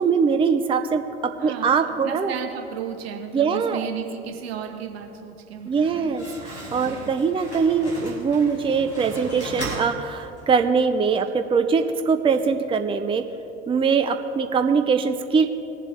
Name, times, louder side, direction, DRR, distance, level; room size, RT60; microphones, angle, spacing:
voice 1, 0.0-2.3 3.3-3.9 5.7-13.2 13.7-15.5, right 5 dB, 15° right, 8 dB, 0.6 m, -22 dB
voice 2, 1.4-6.1 6.8-7.1, right 8 dB, 70° right, 4 dB, 1.4 m, -34 dB
Slam, 5.6-10.6, right 1 dB, 90° left, 2.1 m, -37 dB
20.0 x 7.5 x 3.4 m, 2.8 s
figure-of-eight pair, 65°, 32 cm